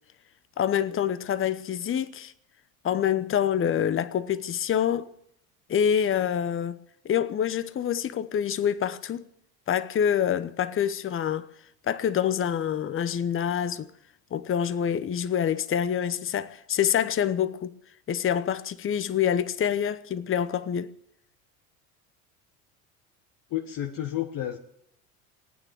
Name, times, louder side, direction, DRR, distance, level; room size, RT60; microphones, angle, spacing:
voice 1, 0.6-2.3 2.8-5.1 5.7-6.8 7.0-9.2 9.7-11.5 11.9-13.9 14.3-17.7 18.1-20.9, left 9 dB, 30° left, 0.9 m, -26 dB
voice 2, 23.5-24.6, left 12 dB, 50° left, 1.5 m, -31 dB
20.5 x 9.1 x 7.6 m
hypercardioid pair, 70°, 43 cm